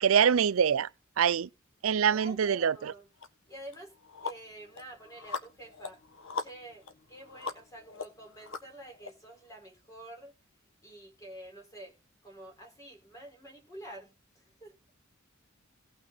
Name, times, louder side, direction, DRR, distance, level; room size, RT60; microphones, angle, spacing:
voice 1, 0.0-0.9 1.2-1.5 1.8-2.9, right 7 dB, 75° right, 0.5 m, -24 dB
voice 2, 2.1-3.1 3.5-4.0 4.2-6.0 6.4-10.3 10.8-12.0 12.2-14.7, right 1 dB, 15° left, 4.5 m, -48 dB
sound 1, 3.2-3.3 3.7-9.1, left 4 dB, 70° left, 1.6 m, -41 dB
18.0 x 6.3 x 4.0 m
head